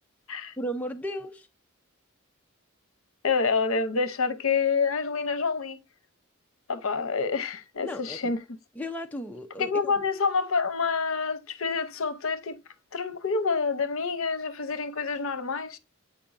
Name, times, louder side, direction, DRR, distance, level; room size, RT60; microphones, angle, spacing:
voice 1, 0.6-1.5 7.8-8.2 8.8-9.9, equal, 5° left, 0.4 m, -35 dB
voice 2, 3.2-5.8 6.7-8.6 9.6-12.6 12.9-15.8, left 5 dB, 70° left, 0.7 m, -27 dB
8.3 x 4.5 x 2.5 m
head